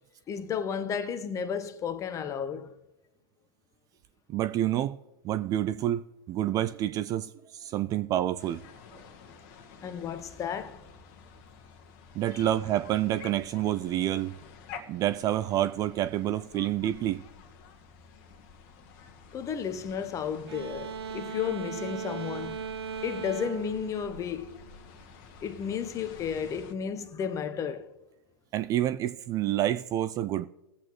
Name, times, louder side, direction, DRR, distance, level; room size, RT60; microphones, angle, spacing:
voice 1, 0.3-2.7 9.8-10.8 12.3-12.5 19.3-22.6 23.0-24.6 25.4-27.9, left 7 dB, 25° left, 0.9 m, -33 dB
voice 2, 4.3-5.0 5.2-8.6 12.1-14.3 14.9-17.2 28.5-30.5, right 12 dB, 30° right, 0.3 m, -28 dB
sound 1, 8.4-26.7, left 5 dB, 45° left, 1.4 m, -50 dB
sound 2, 20.5-24.9, right 6 dB, 75° right, 0.7 m, -38 dB
20.5 x 7.9 x 3.1 m
hypercardioid pair, 110°, 13 cm